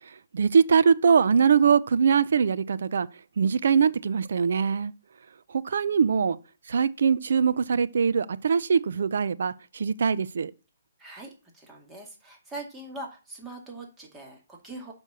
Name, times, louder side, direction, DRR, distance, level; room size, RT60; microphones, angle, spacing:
voice 1, 0.3-3.1 3.4-4.9 5.5-6.4 6.7-10.5, right 6 dB, 65° right, 0.5 m, -22 dB
voice 2, 11.0-14.9, right 2 dB, 10° right, 2.1 m, -42 dB
6.4 x 5.3 x 6.9 m
hypercardioid pair, 150°, 0 cm